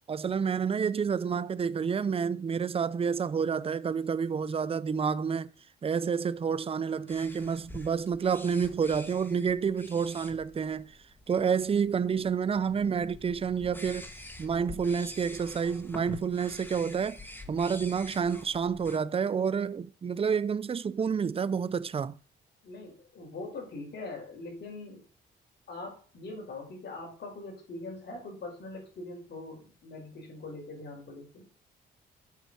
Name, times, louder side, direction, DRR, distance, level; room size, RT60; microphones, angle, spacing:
voice 1, 0.1-5.5 5.8-10.9 11.3-14.1 14.4-17.2 17.5-22.2, right 6 dB, 30° right, 0.5 m, -29 dB
sound 1, 7.1-19.0, left 2 dB, 10° left, 1.6 m, -47 dB
voice 2, 22.6-25.0 25.7-31.4, left 2 dB, 60° left, 5.3 m, -42 dB
8.3 x 5.5 x 6.3 m
cardioid pair, 90°, 20 cm